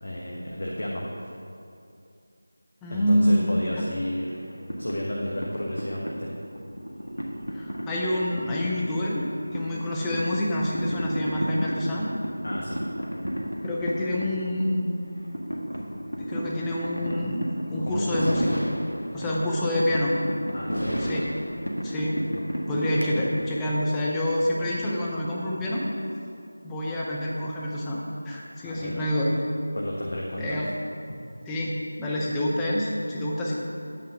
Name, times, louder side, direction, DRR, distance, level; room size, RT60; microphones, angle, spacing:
voice 1, 0.0-1.0 2.9-4.4 4.8-6.3 12.4-12.8 17.8-18.4 19.3-19.4 20.5-21.0 28.6-29.1 29.7-30.6, left 1 dB, 50° left, -3 dB, 1.1 m, -32 dB
voice 2, 2.8-3.8 7.5-12.1 13.6-14.9 16.2-18.5 19.1-20.1 21.0-21.2 21.8-22.2 22.7-25.9 26.6-29.3 30.4-30.7 31.4-33.5, left 1 dB, 5° left, -6 dB, 0.7 m, -27 dB
sound 1, 4.3-23.7, equal, 75° left, 1.4 m, -33 dB
8.8 x 8.7 x 3.6 m, 2.5 s
figure-of-eight pair, 165°, 0 cm